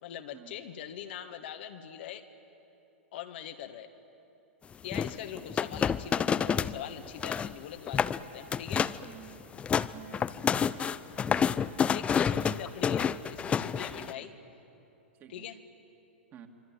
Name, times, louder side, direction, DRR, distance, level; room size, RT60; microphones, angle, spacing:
voice 1, 0.0-2.3 3.1-3.9 4.8-8.9 11.9-14.3 15.3-15.6, left 10 dB, 55° left, 7 dB, 1.6 m, -42 dB
sound 1, 4.9-6.8 7.0-7.5 7.9-8.2 8.5-9.0 9.4-14.1, left 7 dB, 15° left, 0.6 m, -28 dB
voice 2, 9.0-9.4 9.7-10.2 14.0-14.3 15.2-15.5 16.3-16.5, right 10 dB, 30° right, 3 dB, 2.5 m, -50 dB
26.0 x 24.5 x 9.1 m, 2.9 s
figure-of-eight pair, 105°, 7 cm